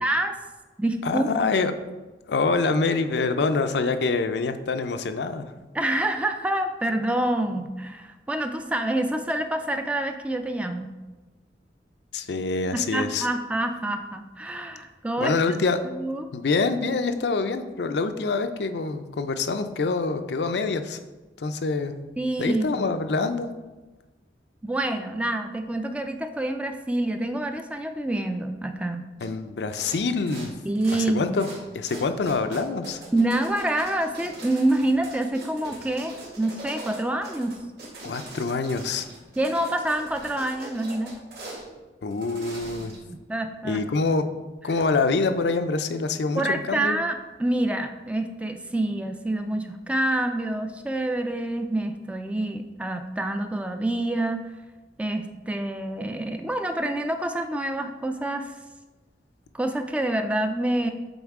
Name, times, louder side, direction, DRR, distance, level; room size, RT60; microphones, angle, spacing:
voice 1, 0.0-0.3 0.8-1.3 5.7-10.9 12.7-15.4 16.0-16.3 22.2-22.9 24.6-29.1 30.6-31.4 33.1-37.6 39.4-41.1 43.3-43.8 46.4-54.4 55.0-58.5 59.5-60.9, right 1 dB, 5° right, 6 dB, 0.3 m, -27 dB
voice 2, 1.0-1.7 2.3-5.5 12.1-13.3 15.2-15.8 16.3-21.0 21.4-21.9 22.4-23.5 29.2-30.5 31.1-31.5 31.7-33.0 38.0-39.1 42.0-42.9 43.6-44.2 44.6-47.0, left 4 dB, 70° left, 8 dB, 0.4 m, -25 dB
sound 1, 29.2-29.3 29.7-30.0 30.3-31.0 31.3-31.6 31.9-41.6 42.1-43.1, right 2 dB, 65° right, 1.8 m, -41 dB
7.9 x 3.9 x 3.6 m, 1.2 s
head